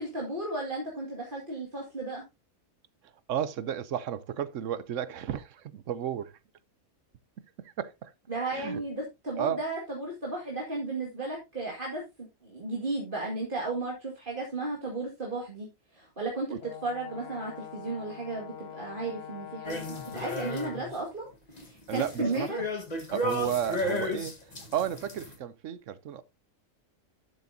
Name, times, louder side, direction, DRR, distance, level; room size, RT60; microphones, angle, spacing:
voice 1, 0.0-2.2 8.3-15.7 15.9-22.6, right 2 dB, 40° right, 2.3 m, -34 dB
voice 2, 3.3-6.3 7.6-8.1 8.5-8.8 9.4-9.6 21.9-22.5 23.1-24.4 24.7-26.2, right 9 dB, 65° right, 1.0 m, -33 dB
Brass instrument, 16.6-21.0, left 9 dB, 55° left, 0.9 m, -44 dB
sound 1, 19.6-21.0 21.3-25.3, left 1 dB, 30° left, 1.6 m, -34 dB
12.0 x 7.3 x 2.7 m
omnidirectional pair, 1.4 m